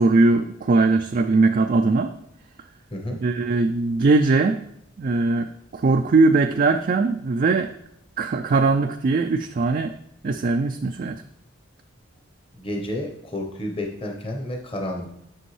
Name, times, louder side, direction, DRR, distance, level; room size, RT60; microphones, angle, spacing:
voice 1, 0.0-2.1 3.2-4.6 5.0-5.5 5.7-7.7 8.2-9.9 10.2-11.2, right 3 dB, 45° right, 6 dB, 0.3 m, -20 dB
voice 2, 12.6-15.1, left 1 dB, 30° left, 3 dB, 0.9 m, -30 dB
7.7 x 6.1 x 3.2 m, 0.76 s
head